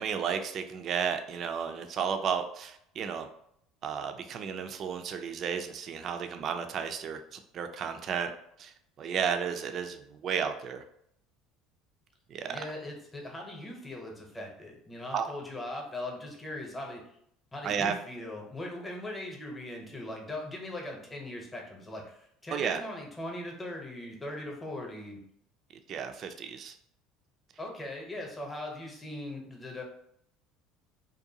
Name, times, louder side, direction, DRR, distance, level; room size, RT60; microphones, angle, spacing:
voice 1, 0.0-3.3 3.8-8.3 8.6-8.7 9.0-10.8 12.3-12.6 15.1-15.3 17.6-17.9 22.5-22.8 25.9-26.7, right 7 dB, 50° right, 7 dB, 0.3 m, -33 dB
voice 2, 12.5-17.0 17.5-25.2 27.6-29.8, left 1 dB, 15° left, 0 dB, 0.8 m, -40 dB
2.6 x 2.2 x 2.7 m, 0.72 s
hypercardioid pair, 80°, 0 cm